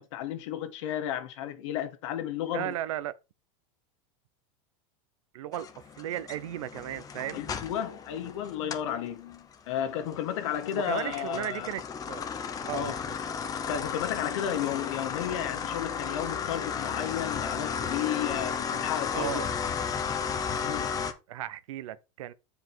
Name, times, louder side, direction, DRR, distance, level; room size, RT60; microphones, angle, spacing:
voice 1, 0.0-2.7 7.3-11.8 12.7-13.0 13.7-19.5 20.6-21.0, left 10 dB, 65° left, 1.7 m, -33 dB
voice 2, 2.5-3.1 5.3-5.7 6.0-7.5 10.7-11.8 12.1-12.3 12.6-13.0 19.1-19.5 21.3-22.3, right 13 dB, 85° right, 0.8 m, -35 dB
sound 1, 5.5-8.9 9.3-21.1, left 6 dB, 20° left, 0.9 m, -34 dB
7.9 x 5.0 x 4.5 m
supercardioid pair, 145°, 16 cm